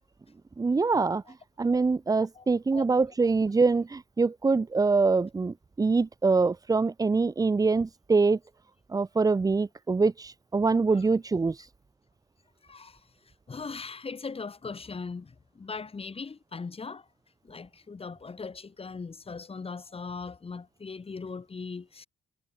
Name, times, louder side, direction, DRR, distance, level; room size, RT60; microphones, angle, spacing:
voice 1, 0.6-1.2 1.6-8.4 8.9-11.6, right 4 dB, 20° right, 0.5 m, -24 dB
voice 2, 12.6-13.0 13.5-17.1 17.4-22.1, left 4 dB, 30° left, 2.1 m, -39 dB
cardioid pair, 90°, 20 cm